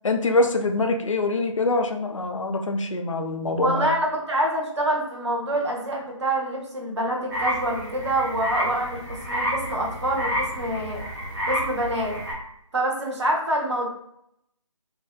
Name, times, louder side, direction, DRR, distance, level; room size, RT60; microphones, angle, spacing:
voice 1, 0.0-3.9, left 2 dB, 65° left, 4 dB, 0.4 m, -24 dB
voice 2, 3.6-11.0 11.5-12.2 12.7-13.9, right 1 dB, 55° right, -1 dB, 0.7 m, -26 dB
sound 1, 7.3-12.3, equal, 35° right, 1.0 m, -29 dB
2.6 x 2.1 x 2.2 m, 0.75 s
figure-of-eight pair, 155°, 17 cm